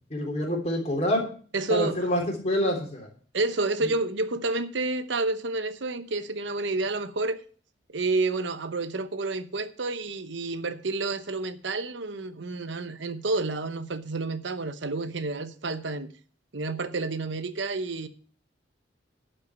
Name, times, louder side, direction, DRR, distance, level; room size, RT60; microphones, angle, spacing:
voice 1, 0.1-1.3 1.7-3.1, equal, 35° left, 3.5 m, -26 dB
voice 2, 1.5-2.1 3.3-7.4 7.9-16.1 16.5-18.1, right 3 dB, 70° right, 0.9 m, -29 dB
12.0 x 5.6 x 8.2 m
head